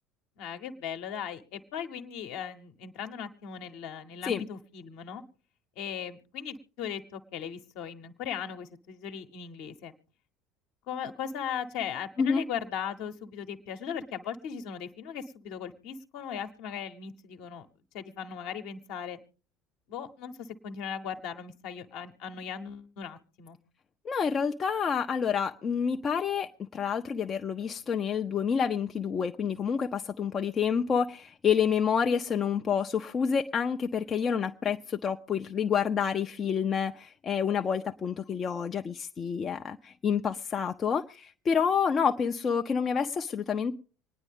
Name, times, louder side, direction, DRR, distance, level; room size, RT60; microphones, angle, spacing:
voice 1, 0.4-5.2 5.8-9.9 10.9-17.7 17.9-19.2 19.9-23.6, left 8 dB, 60° left, 1.0 m, -38 dB
voice 2, 24.0-43.7, left 7 dB, 35° left, 0.5 m, -28 dB
26.0 x 9.7 x 3.5 m
figure-of-eight pair, 65°, 0 cm